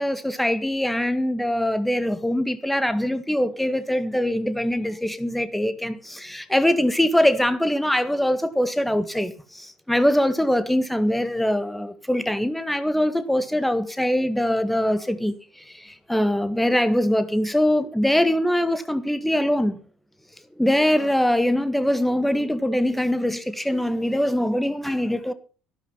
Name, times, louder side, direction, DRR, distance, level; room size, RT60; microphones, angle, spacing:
voice 1, 0.0-15.4 15.7-19.8 20.6-25.3, left 1 dB, 5° left, 1.7 m, -23 dB
13.0 x 12.0 x 5.7 m
figure-of-eight pair, 60°, 3 cm